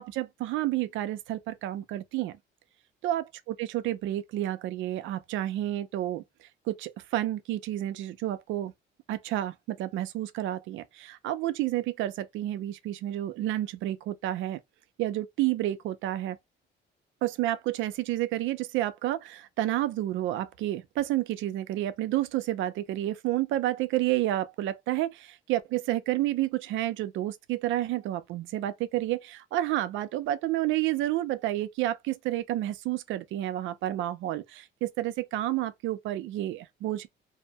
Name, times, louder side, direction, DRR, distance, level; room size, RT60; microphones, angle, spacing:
voice 1, 0.0-2.4 3.0-8.7 9.1-14.6 15.0-16.4 17.2-37.1, right 14 dB, 90° right, 0.5 m, -30 dB
2.7 x 2.1 x 2.7 m
cardioid pair, 135°, 19 cm